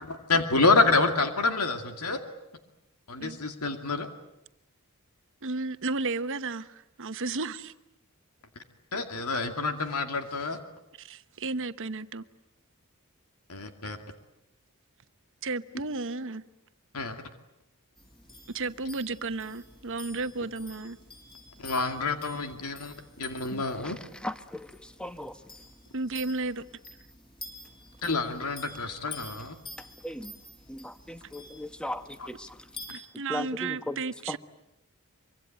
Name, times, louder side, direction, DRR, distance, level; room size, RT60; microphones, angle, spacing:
voice 1, 0.0-2.2 3.1-4.1 8.9-10.6 13.5-14.0 16.9-17.2 21.6-24.0 28.0-29.5 32.2-32.3, left 3 dB, 85° left, 2.3 m, -27 dB
voice 2, 5.4-7.7 11.0-12.3 15.4-16.4 18.5-21.0 25.9-26.6 32.9-34.4, right 3 dB, 60° right, 1.1 m, -33 dB
sound 1, 18.0-32.9, left 3 dB, 25° left, 5.7 m, -49 dB
voice 3, 24.2-24.7 25.0-25.3 30.0-30.3 30.7-32.0 32.3-32.5 33.3-34.0, left 1 dB, 5° left, 1.0 m, -36 dB
24.5 x 24.5 x 9.1 m
head